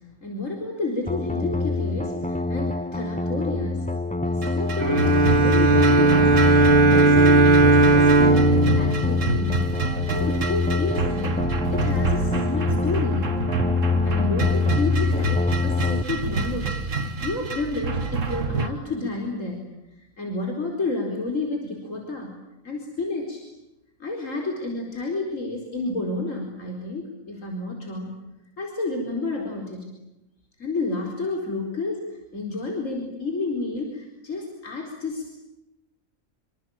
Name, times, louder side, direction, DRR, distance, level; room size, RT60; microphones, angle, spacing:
voice 1, 0.2-3.9 4.3-6.5 6.8-9.7 10.1-11.4 11.7-13.4 14.0-16.8 17.2-19.6 20.2-23.4 24.0-28.2 28.6-29.9 30.6-35.3, left 3 dB, 70° left, 1 dB, 4.9 m, -30 dB
sound 1, 1.1-16.0, left 3 dB, 5° left, 0.8 m, -25 dB
sound 2, 4.4-18.7, right 3 dB, 70° right, 2.1 m, -28 dB
Bowed string instrument, 4.8-10.0, right 3 dB, 40° right, 2.8 m, -18 dB
27.0 x 25.0 x 8.8 m, 0.93 s
omnidirectional pair, 1.4 m